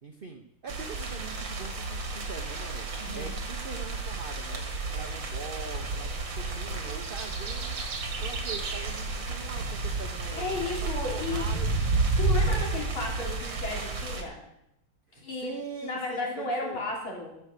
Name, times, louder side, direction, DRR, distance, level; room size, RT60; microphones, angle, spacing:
voice 1, 0.0-2.9 3.1-4.6 4.9-6.1 6.4-7.7 8.2-12.0 15.1-16.9, right 5 dB, 45° right, 4 dB, 0.7 m, -42 dB
sound 1, 0.7-14.2, right 3 dB, 65° right, 2.4 m, -31 dB
voice 2, 3.0-3.3 10.4-11.5 12.2-14.4 15.1-15.5 15.8-17.4, left 2 dB, 85° left, -2 dB, 4.1 m, -34 dB
sound 2, 5.2-6.1 6.4-7.1 7.6-8.4 8.6-9.5 9.8-10.8 11.2-11.9 12.2-12.4, left 2 dB, 65° left, 2.9 m, -49 dB
16.5 x 7.2 x 6.6 m, 0.80 s
omnidirectional pair, 2.2 m